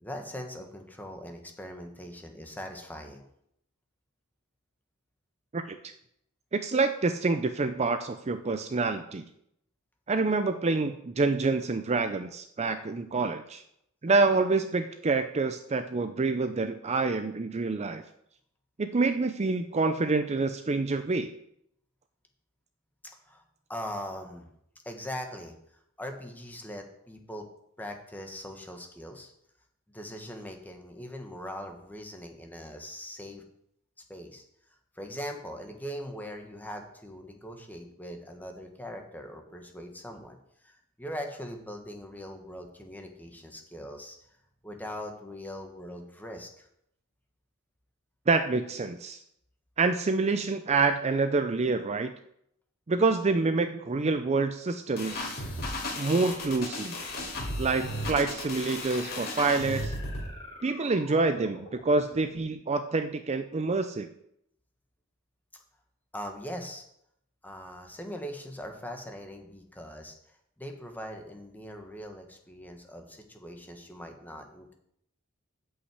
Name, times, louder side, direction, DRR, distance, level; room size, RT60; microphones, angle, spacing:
voice 1, 0.0-3.2 23.2-23.4 23.7-24.5 24.8-25.5 26.0-27.4 27.8-29.3 29.9-33.4 34.1-34.4 34.9-40.4 40.6-44.2 44.6-46.7 66.1-66.8 67.4-70.1 70.6-74.7, equal, 10° left, 3 dB, 1.4 m, -41 dB
voice 2, 6.5-9.2 10.1-13.6 14.0-18.0 18.8-21.3 48.3-49.2 49.8-52.1 52.9-55.3 56.0-56.9 57.6-59.9 60.6-64.1, right 3 dB, 30° right, 9 dB, 0.5 m, -27 dB
sound 1, 55.0-60.3, left 1 dB, 45° left, 2.5 m, -35 dB
sound 2, 59.1-62.6, left 2 dB, 25° left, 3.4 m, -48 dB
8.4 x 5.7 x 8.0 m, 0.73 s
head